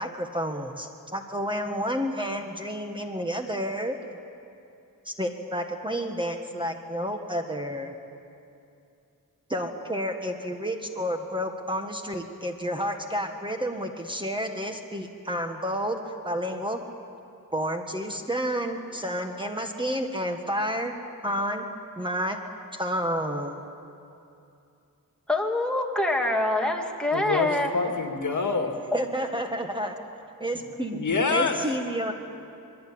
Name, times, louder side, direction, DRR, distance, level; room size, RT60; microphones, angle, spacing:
voice 1, 0.0-4.0 5.0-7.9 9.5-16.8 17.5-20.9 21.2-21.7 22.0-22.4 22.7-23.6 28.9-30.0 30.4-31.0 31.3-32.1, equal, 15° right, 4 dB, 1.5 m, -30 dB
voice 2, 25.3-27.7, left 1 dB, ahead, 0 dB, 2.5 m, -25 dB
voice 3, 27.1-28.8 30.9-31.6, left 4 dB, 60° left, 4 dB, 2.4 m, -26 dB
26.5 x 22.0 x 8.7 m, 2.6 s
wide cardioid pair, 125°, 35 cm